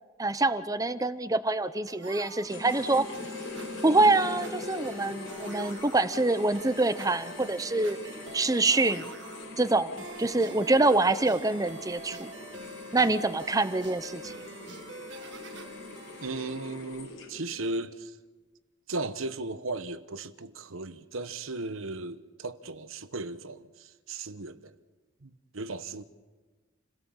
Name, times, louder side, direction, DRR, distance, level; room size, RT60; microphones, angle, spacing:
voice 1, 0.2-3.1 3.8-8.0 8.3-9.1 9.6-12.3 12.9-14.3, right 2 dB, 15° right, 0.7 m, -25 dB
sound 1, 1.9-17.4, right 2 dB, 60° right, 1.9 m, -46 dB
sound 2, 2.5-17.6, left 3 dB, 75° left, 4.5 m, -43 dB
voice 2, 16.2-18.2 18.9-24.7 25.2-26.0, right 2 dB, 85° right, 1.2 m, -36 dB
28.5 x 17.0 x 7.3 m
head